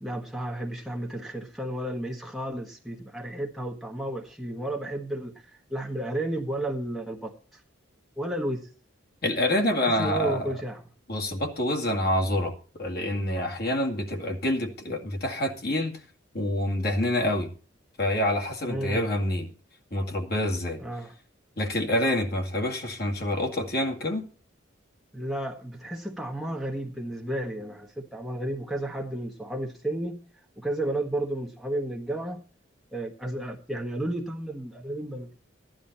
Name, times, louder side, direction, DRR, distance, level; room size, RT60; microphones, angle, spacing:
voice 1, 0.0-7.6 8.2-8.7 9.8-10.8 18.6-19.0 20.8-21.1 25.1-30.2 30.6-32.4 32.9-35.4, right 1 dB, ahead, -1 dB, 1.3 m, -32 dB
voice 2, 9.2-10.5 11.1-16.0 16.3-17.5 18.0-19.5 19.9-20.8 21.6-24.3, left 1 dB, 50° left, 2 dB, 2.1 m, -27 dB
14.0 x 10.5 x 4.3 m, 0.38 s
head